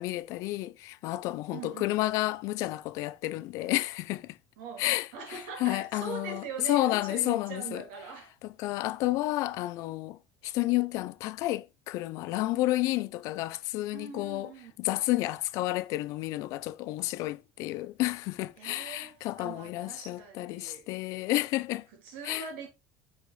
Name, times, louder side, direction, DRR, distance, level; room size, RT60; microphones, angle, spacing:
voice 1, 0.0-4.3 4.8-7.8 8.4-10.2 10.4-14.5 14.8-21.9 22.3-22.4, left 17 dB, 60° left, 0.5 m, -31 dB
voice 2, 1.5-1.9 4.6-8.3 13.9-14.7 18.6-20.9 22.0-22.7, right 5 dB, 85° right, 3.1 m, -42 dB
9.3 x 4.2 x 3.2 m
cardioid pair, 145°, 6 cm